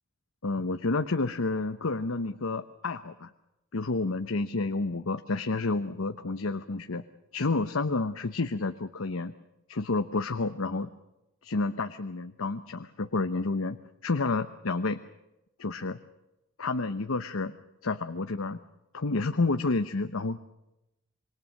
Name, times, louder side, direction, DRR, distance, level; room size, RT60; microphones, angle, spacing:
voice 1, 0.4-3.3 3.7-7.0 7.3-9.3 9.7-10.9 11.4-13.8 14.0-15.0 15.6-16.0 16.6-17.6 17.8-18.6 18.9-20.4, left 3 dB, 80° left, 9 dB, 0.9 m, -30 dB
26.5 x 23.0 x 6.5 m, 0.91 s
head